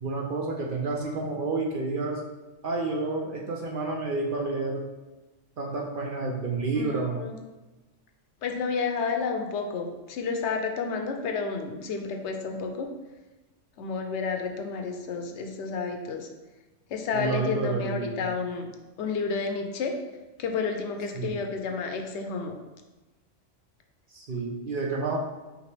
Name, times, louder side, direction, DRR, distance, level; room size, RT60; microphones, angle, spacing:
voice 1, 0.0-2.2 2.6-4.8 5.6-7.2 17.1-18.1 21.1-21.3 24.1-25.2, right 3 dB, 55° right, 0 dB, 0.7 m, -29 dB
voice 2, 6.7-7.3 8.4-12.9 13.8-16.3 16.9-18.7 19.0-19.9 20.4-22.5, left 5 dB, 70° left, 4 dB, 0.8 m, -31 dB
4.9 x 3.2 x 3.2 m, 1.1 s
omnidirectional pair, 1.3 m